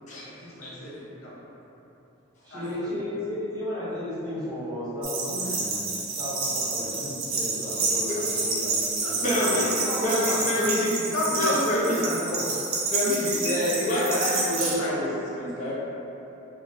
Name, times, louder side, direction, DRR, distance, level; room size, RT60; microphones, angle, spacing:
voice 1, 0.2-1.4 2.5-2.9 9.0-12.5 13.0-13.3 13.9-15.0, left 1 dB, 85° left, -7 dB, 0.8 m, -31 dB
voice 2, 2.4-9.6, left 1 dB, 20° right, -11 dB, 0.8 m, -34 dB
sound 1, 5.0-14.7, right 3 dB, 70° right, 0.5 m, -29 dB
voice 3, 9.2-9.7 10.0-10.9 11.4-11.9 12.9-15.1 15.4-15.7, left 1 dB, 35° left, -8 dB, 0.6 m, -27 dB
3.6 x 2.1 x 2.6 m, 3.0 s
head